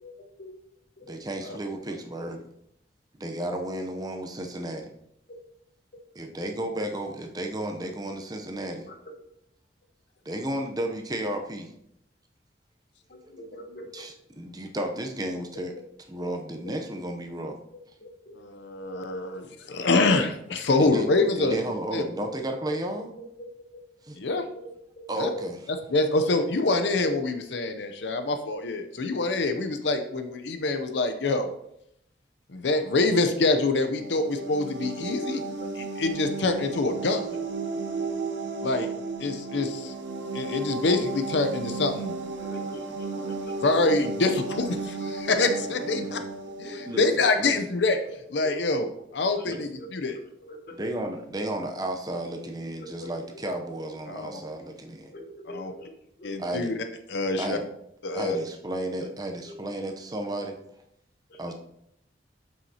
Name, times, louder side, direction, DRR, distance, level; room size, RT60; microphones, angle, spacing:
voice 1, 0.0-0.5 1.0-1.1 1.4-1.6 5.3-5.4 8.9-9.0 13.1-14.1 18.0-18.4 22.7-23.1 23.4-23.5 24.5-24.7 25.0-25.1 25.3-25.5 33.7-33.8 34.3-35.7 42.4-43.8 45.3-45.7 46.0-46.1 46.6-46.8 47.2-47.3 48.0-48.2 48.4-48.7 49.4-49.5 49.8-49.9 50.1-50.8 52.4-53.1 53.7-53.8 55.1-56.6 57.3-57.4 58.0-58.5 59.0-59.1 59.5-59.6 61.3-61.5, left 1 dB, 55° left, 4 dB, 1.1 m, -44 dB
voice 2, 1.0-2.4 3.2-4.9 6.1-8.9 10.2-11.7 13.2-13.3 13.9-15.7 16.1-17.6 20.8-21.1 21.4-23.1 24.0-24.2 25.1-25.6 45.6-46.2 46.9-47.6 49.4-49.6 50.7-55.1 56.4-56.7 57.4-57.6 58.1-60.5 61.4-61.5, right 1 dB, 20° right, 4 dB, 0.6 m, -33 dB
voice 3, 18.4-21.6 21.9-22.0 24.2-24.4 25.2-25.3 25.9-31.5 32.5-35.4 36.0-37.4 38.6-38.9 39.2-39.9 40.3-42.2 43.6-46.2 46.6-48.0 48.3-48.9 49.1-50.2 54.1-54.2 55.5-55.7 56.2-56.8 57.1-57.6 58.0-58.4, left 3 dB, 75° left, 8 dB, 0.6 m, -25 dB
sound 1, 33.9-47.4, right 3 dB, 85° right, 0.8 m, -34 dB
7.7 x 5.6 x 2.8 m, 0.76 s
head